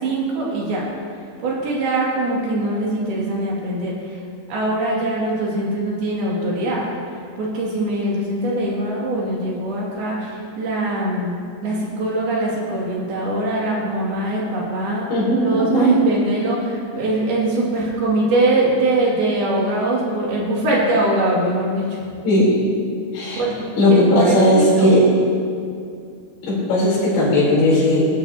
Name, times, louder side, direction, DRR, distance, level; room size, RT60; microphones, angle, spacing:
voice 1, 0.0-0.9 1.4-4.2 4.5-6.9 7.4-11.3 11.6-15.1 15.4-22.1 23.3-23.5 23.9-24.9, right 1 dB, 70° right, -4 dB, 4.2 m, -22 dB
voice 2, 15.1-16.0 22.2-22.6 23.1-23.4 23.8-25.0 26.4-28.1, left 1 dB, 80° left, -6 dB, 5.7 m, -16 dB
19.0 x 12.0 x 2.8 m, 2.3 s
omnidirectional pair, 4.5 m